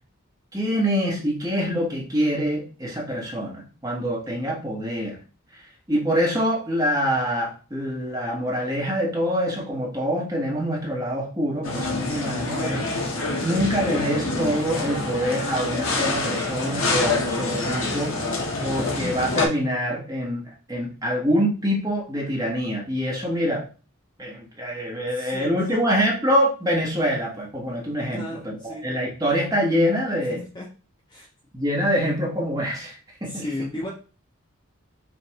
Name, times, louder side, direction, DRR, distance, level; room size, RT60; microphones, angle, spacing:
voice 1, 0.5-5.2 5.9-12.9 13.4-18.2 18.6-23.6 24.2-30.4 31.5-33.4, equal, 15° right, 1.2 m, -25 dB
sound 1, 11.6-19.5, left 2 dB, 80° left, 0.9 m, -26 dB
voice 2, 25.1-25.8 28.1-28.8 30.2-30.7 31.1-31.3 33.2-33.9, left 1 dB, 20° left, 0.6 m, -34 dB
5.2 x 2.5 x 3.0 m
head